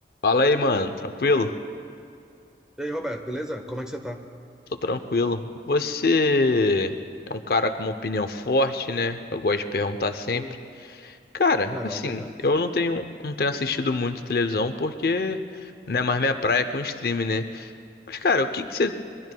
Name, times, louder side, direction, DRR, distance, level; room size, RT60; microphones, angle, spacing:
voice 1, 0.2-1.5 4.8-7.0 7.3-10.4 11.0-17.7 18.1-19.0, left 3 dB, 55° left, 8 dB, 0.6 m, -24 dB
voice 2, 2.8-4.2 10.3-10.6 11.7-12.4, equal, 5° right, 4 dB, 0.9 m, -33 dB
26.0 x 22.5 x 2.2 m, 2.5 s
head